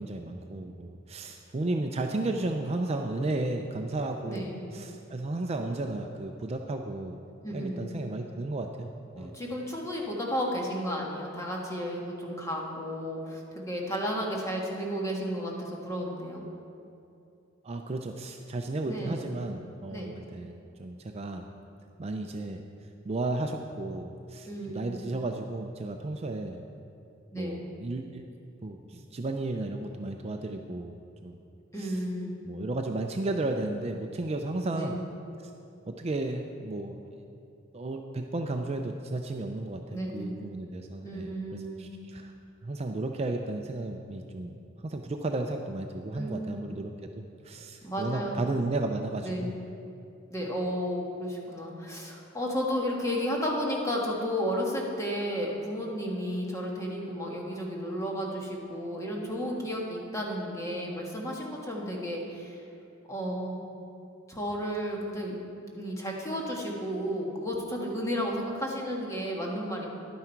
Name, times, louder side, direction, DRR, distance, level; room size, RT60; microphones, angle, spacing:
voice 1, 0.0-7.2 7.5-9.3 17.6-20.5 20.8-21.4 22.0-22.6 23.1-26.6 27.4-28.2 28.6-31.0 31.2-31.4 31.8-32.0 32.4-35.0 35.4-35.5 35.9-37.2 37.7-42.3 42.6-49.5, right 2 dB, 30° right, 4 dB, 0.4 m, -34 dB
voice 2, 4.3-4.7 7.4-7.9 9.1-16.4 18.8-19.4 19.9-20.1 24.5-25.1 27.3-27.7 31.7-32.3 34.7-35.0 39.9-40.3 41.0-41.9 46.2-46.6 47.8-48.5 49.2-49.5 50.3-62.6 63.1-63.6 64.3-65.4 65.7-69.9, equal, 15° left, -2 dB, 1.5 m, -33 dB
11.0 x 9.5 x 4.5 m, 2.6 s
head